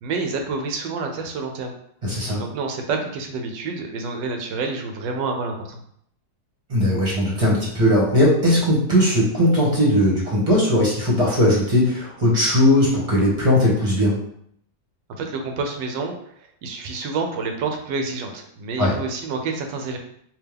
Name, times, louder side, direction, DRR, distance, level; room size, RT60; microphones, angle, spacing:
voice 1, 0.0-1.8 2.4-5.8 15.2-16.1 16.6-20.0, right 4 dB, 75° right, 4 dB, 1.3 m, -28 dB
voice 2, 2.0-2.4 6.7-14.2 18.8-18.9, left 1 dB, 20° right, -4 dB, 1.3 m, -18 dB
3.5 x 3.0 x 3.4 m, 0.69 s
omnidirectional pair, 2.1 m